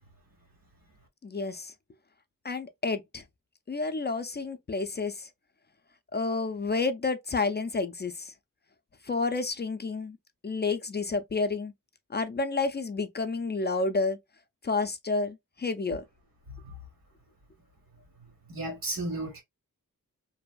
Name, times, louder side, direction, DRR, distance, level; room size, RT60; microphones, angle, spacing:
voice 1, 1.2-1.7 2.4-3.2 3.7-5.3 6.1-8.3 9.1-10.2 10.4-11.7 12.1-14.2 14.6-16.0, left 3 dB, 30° left, 0.4 m, -30 dB
voice 2, 18.5-19.4, right 2 dB, 85° right, 1.5 m, -34 dB
2.7 x 2.4 x 2.2 m
wide cardioid pair, 70°, 34 cm